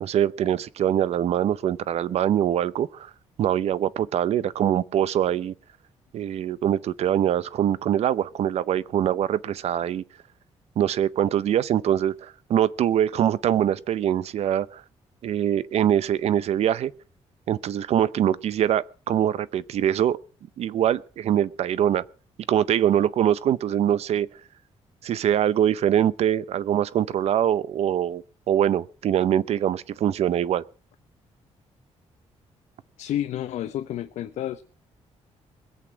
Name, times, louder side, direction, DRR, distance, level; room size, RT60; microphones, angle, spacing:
voice 1, 0.0-3.1 3.4-5.5 6.1-10.0 10.8-14.8 15.2-16.9 17.5-20.2 20.6-22.0 22.5-24.3 25.0-30.6, right 10 dB, 65° right, 0.7 m, -23 dB
voice 2, 33.0-34.6, left 11 dB, 85° left, 0.9 m, -30 dB
21.0 x 8.2 x 6.0 m
cardioid pair, 145°, 12 cm